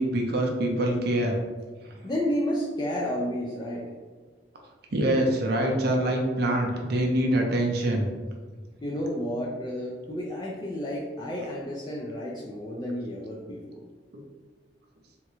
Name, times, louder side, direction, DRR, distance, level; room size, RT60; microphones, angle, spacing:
voice 1, 0.0-1.4 4.9-8.1 14.1-14.2, right 1 dB, 60° right, 1 dB, 0.5 m, -25 dB
voice 2, 2.0-3.9 8.8-13.8, equal, 25° left, -4 dB, 0.3 m, -31 dB
3.6 x 2.1 x 2.9 m, 1.4 s
head